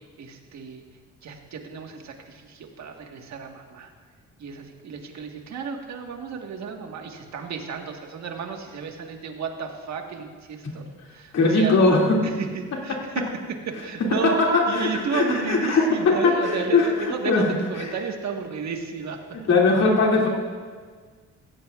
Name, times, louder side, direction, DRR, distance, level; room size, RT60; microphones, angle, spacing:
voice 1, 0.2-0.8 1.2-3.9 4.4-10.8 11.1-11.8 12.2-13.3 13.7-14.4 14.7-19.2, right 6 dB, 65° right, 3 dB, 1.6 m, -33 dB
voice 2, 11.3-12.2 14.2-16.9 17.2-17.4 19.5-20.3, left 3 dB, 60° left, -2 dB, 2.6 m, -20 dB
16.0 x 15.0 x 2.5 m, 1.6 s
cardioid pair, 90°, 30 cm